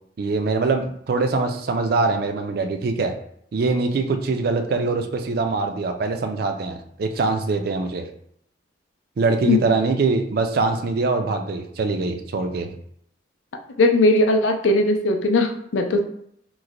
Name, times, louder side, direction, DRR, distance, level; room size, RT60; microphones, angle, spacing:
voice 1, 0.2-3.1 3.5-8.1 9.2-12.7, right 3 dB, 55° right, 6 dB, 0.4 m, -23 dB
voice 2, 13.8-16.0, left 2 dB, 80° left, 5 dB, 0.4 m, -18 dB
3.1 x 2.1 x 3.7 m, 0.70 s
head